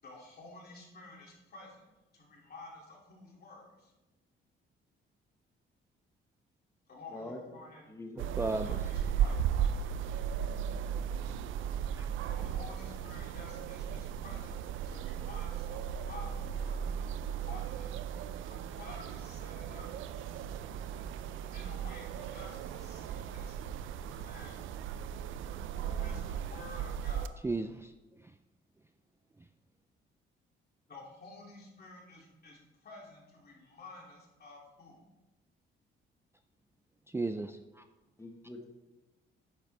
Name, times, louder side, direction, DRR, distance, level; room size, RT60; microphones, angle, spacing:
voice 1, 0.0-1.9 2.1-3.9 6.9-7.9 8.6-9.4 12.1-14.6 14.9-16.9 17.3-18.0 18.5-19.9 21.5-23.6 24.1-24.7 25.7-27.3 30.9-35.0, left 2 dB, 50° left, 2.8 m, -51 dB
voice 2, 7.1-7.4 7.9-8.3 38.2-38.6, left 1 dB, 15° left, 1.3 m, -44 dB
voice 3, 8.2-8.8 11.9-12.1 27.4-27.9 28.2-28.3 29.4-29.5 37.1-37.8, right 3 dB, 15° right, 0.4 m, -35 dB
sound 1, 8.2-27.3, right 8 dB, 80° right, 0.5 m, -36 dB
9.3 x 7.5 x 3.4 m
cardioid pair, 90°, 20 cm